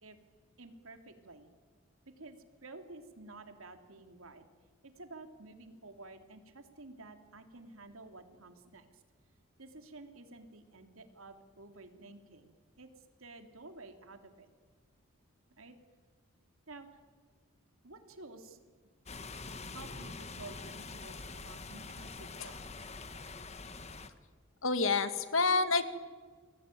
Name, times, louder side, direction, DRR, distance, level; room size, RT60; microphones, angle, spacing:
voice 1, 0.6-1.5 2.2-2.4 2.6-4.4 5.0-8.8 9.6-12.5 12.8-12.9 13.2-14.5 15.6-15.7 16.7-16.9 17.8-18.6 19.6-22.6, right 2 dB, 75° right, 7 dB, 2.9 m, -51 dB
sound 1, 19.1-24.1, left 3 dB, 30° left, 1.4 m, -45 dB
voice 2, 24.6-25.8, left 4 dB, 70° left, 11 dB, 1.9 m, -28 dB
29.5 x 21.5 x 9.2 m, 1.5 s
head